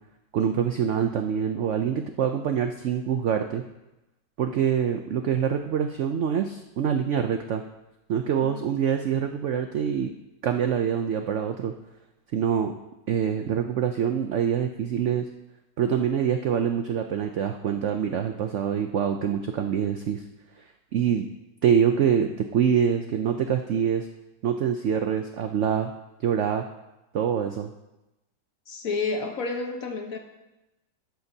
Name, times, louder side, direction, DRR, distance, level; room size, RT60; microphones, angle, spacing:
voice 1, 0.3-3.6 4.4-7.6 8.1-10.1 10.4-11.7 12.3-12.7 13.1-15.3 15.8-20.2 20.6-20.7 20.9-21.3 21.6-24.1 24.4-25.9 26.2-26.6 27.1-27.7, right 8 dB, 75° right, 6 dB, 0.6 m, -25 dB
voice 2, 28.7-30.2, left 4 dB, 55° left, 4 dB, 1.4 m, -30 dB
13.0 x 10.5 x 2.8 m, 0.97 s
omnidirectional pair, 1.9 m